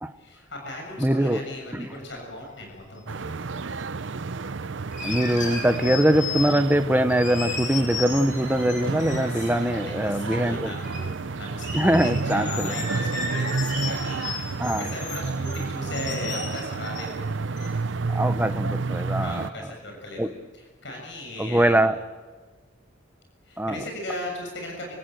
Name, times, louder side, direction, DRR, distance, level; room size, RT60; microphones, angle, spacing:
voice 1, 0.2-3.4 5.4-5.5 9.2-12.0 12.2-17.2 19.2-21.9 23.5-24.9, left 1 dB, 65° left, 1 dB, 7.1 m, -37 dB
voice 2, 1.0-1.4 1.7-1.9 5.0-10.7 11.7-12.8 14.6-14.9 18.1-19.5 20.2-20.3 21.4-22.0 23.6-23.8, right 1 dB, 10° right, 9 dB, 1.1 m, -22 dB
sound 1, 2.8-2.9 4.9-6.8 7.1-9.7 10.3-11.0 11.3-11.4 11.6-17.2 17.6-17.7, left 4 dB, 40° left, 7.4 m, -34 dB
sound 2, 3.1-19.5, right 4 dB, 70° right, 0.7 m, -31 dB
30.0 x 17.0 x 7.9 m, 1.4 s
head